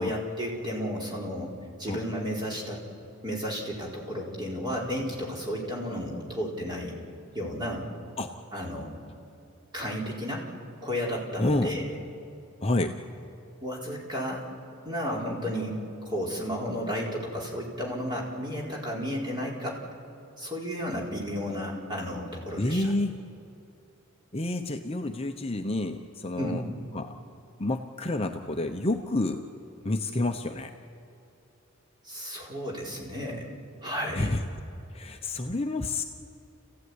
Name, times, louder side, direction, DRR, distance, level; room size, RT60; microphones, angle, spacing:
voice 1, 0.0-1.5 1.8-2.8 3.2-7.0 7.3-7.9 8.5-9.0 9.7-10.5 10.8-11.9 13.6-14.4 14.8-19.8 20.4-22.9 26.4-26.6 32.0-33.5 33.8-34.3, equal, 20° right, -3 dB, 4.4 m, -33 dB
voice 2, 11.4-11.7 12.6-13.0 22.6-23.1 24.3-26.6 26.9-27.1 27.6-29.4 29.8-30.7 34.1-34.4 34.9-36.0, left 2 dB, 30° left, 5 dB, 0.9 m, -29 dB
29.5 x 15.5 x 9.7 m, 2.8 s
head